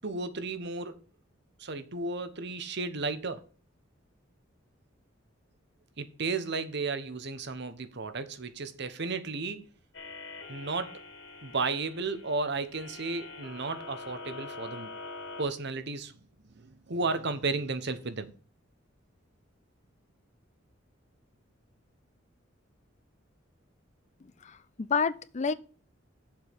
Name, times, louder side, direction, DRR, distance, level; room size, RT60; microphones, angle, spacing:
voice 1, 0.0-1.0 1.6-3.4 6.0-9.6 10.5-11.0 11.4-14.9 15.4-16.1 16.4-18.3, right 3 dB, 60° right, 1.1 m, -33 dB
sound 1, 9.9-15.4, left 3 dB, 70° left, 2.6 m, -44 dB
voice 2, 24.2-25.5, left 5 dB, 35° left, 0.5 m, -30 dB
7.3 x 5.1 x 7.3 m
head